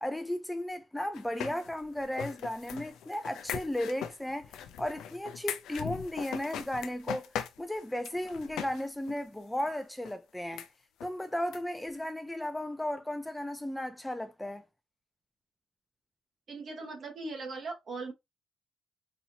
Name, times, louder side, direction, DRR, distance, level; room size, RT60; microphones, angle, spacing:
voice 1, 0.0-4.5 4.8-7.3 7.6-10.7 11.0-14.6, left 1 dB, 10° left, 0.5 m, -35 dB
sound 1, 1.1-8.8 9.1-9.2 9.6-9.7 10.0-10.1 10.5-10.7 11.0-11.1 11.5-11.6 11.9-12.0, left 9 dB, 85° left, 0.5 m, -40 dB
voice 2, 16.5-18.1, right 3 dB, 50° right, 1.3 m, -39 dB
4.2 x 2.6 x 2.8 m
cardioid pair, 90°, 0 cm